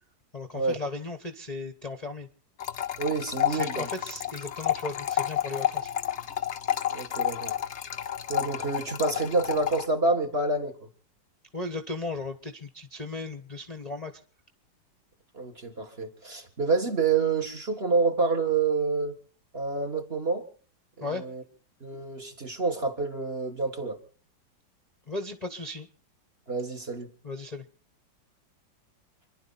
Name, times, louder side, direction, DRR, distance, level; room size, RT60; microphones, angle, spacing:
voice 1, 0.3-2.3 3.5-5.9 11.5-14.1 21.0-21.2 25.1-25.9 27.2-27.6, left 2 dB, 25° left, 3 dB, 1.1 m, -36 dB
sound 1, 2.6-9.9, left 11 dB, 50° left, 0.9 m, -30 dB
voice 2, 3.0-3.9 6.9-7.6 8.3-10.9 15.3-19.2 19.5-20.4 21.0-21.4 21.8-24.0 26.5-27.1, right 4 dB, 30° right, 4 dB, 1.9 m, -28 dB
28.5 x 11.5 x 4.2 m, 0.42 s
omnidirectional pair, 2.1 m